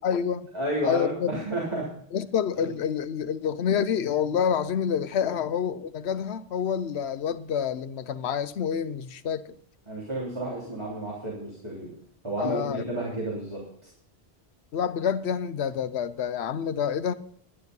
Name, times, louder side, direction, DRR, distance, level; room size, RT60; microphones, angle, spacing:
voice 1, 0.0-0.5 0.8-1.4 2.1-9.6 12.4-12.8 14.7-17.1, left 8 dB, 75° left, 1.0 m, -28 dB
voice 2, 0.5-1.9 2.6-2.7 9.9-11.9 12.2-13.7, right 1 dB, 25° right, 3.5 m, -31 dB
12.0 x 11.0 x 5.4 m
omnidirectional pair, 1.1 m